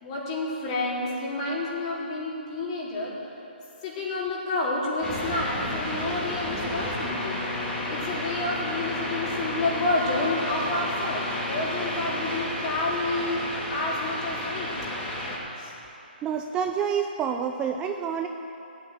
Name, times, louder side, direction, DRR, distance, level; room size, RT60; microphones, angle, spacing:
voice 1, 0.0-3.2 3.8-7.4 7.9-13.4 13.7-14.8 15.6-15.7, left 2 dB, 35° left, -5 dB, 4.1 m, -29 dB
sound 1, 5.0-15.4, left 1 dB, 15° left, 3.1 m, -31 dB
voice 2, 16.2-18.3, right 7 dB, 15° right, 5 dB, 0.5 m, -28 dB
16.0 x 9.2 x 9.1 m, 2.9 s
hypercardioid pair, 150°, 6 cm